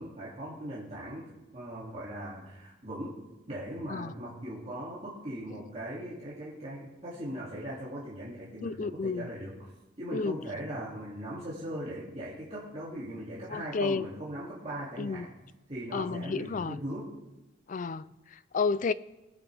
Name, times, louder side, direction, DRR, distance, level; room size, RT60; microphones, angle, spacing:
voice 1, 0.0-3.2 3.5-9.7 10.0-15.3 15.7-17.1, right 1 dB, 35° right, 2.5 m, -39 dB
voice 2, 8.6-9.3 10.1-10.4 13.5-14.1 15.0-15.3 15.9-16.8 17.7-18.9, left 4 dB, 40° left, 0.4 m, -31 dB
20.0 x 10.5 x 3.4 m
head